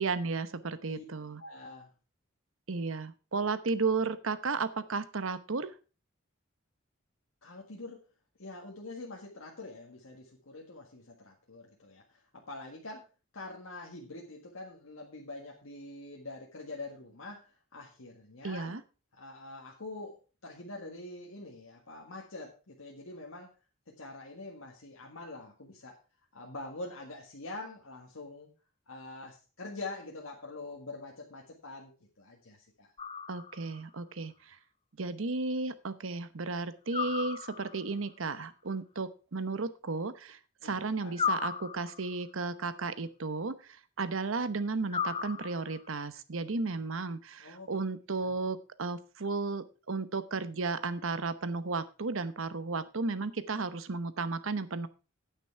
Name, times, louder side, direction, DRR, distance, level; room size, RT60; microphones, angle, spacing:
voice 1, 0.0-1.4 2.7-5.7 18.4-18.8 33.3-34.6 35.0-43.5 44.0-54.9, right 4 dB, 75° right, 13 dB, 0.9 m, -34 dB
voice 2, 1.4-1.9 7.4-8.0 8.4-13.0 13.3-18.8 19.1-20.2 20.4-23.5 23.9-26.0 26.3-28.5 28.9-32.9 40.6-41.2 47.4-47.7 48.2-48.4, left 2 dB, 85° left, -1 dB, 1.8 m, -45 dB
sound 1, 33.0-33.8 36.9-37.9 41.2-42.2 44.9-45.9, left 6 dB, 25° left, 0.7 m, -35 dB
9.2 x 9.1 x 4.6 m, 0.33 s
head